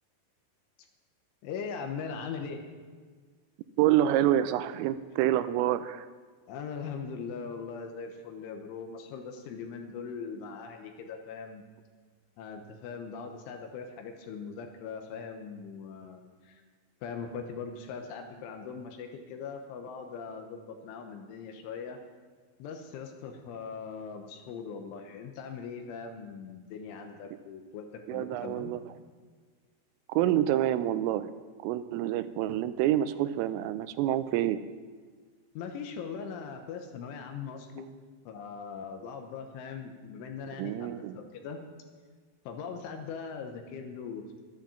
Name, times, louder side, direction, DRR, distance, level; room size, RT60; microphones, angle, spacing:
voice 1, 1.4-2.6 6.5-11.6 12.4-16.6 17.0-22.0 22.6-28.7 35.5-37.9 38.3-41.6 42.5-44.4, left 6 dB, 80° left, 4 dB, 3.3 m, -40 dB
voice 2, 3.8-6.1 28.1-28.8 30.1-31.3 31.6-34.6 40.6-41.2, right 12 dB, 90° right, 13 dB, 3.2 m, -27 dB
13.0 x 10.5 x 7.1 m, 1.6 s
omnidirectional pair, 5.8 m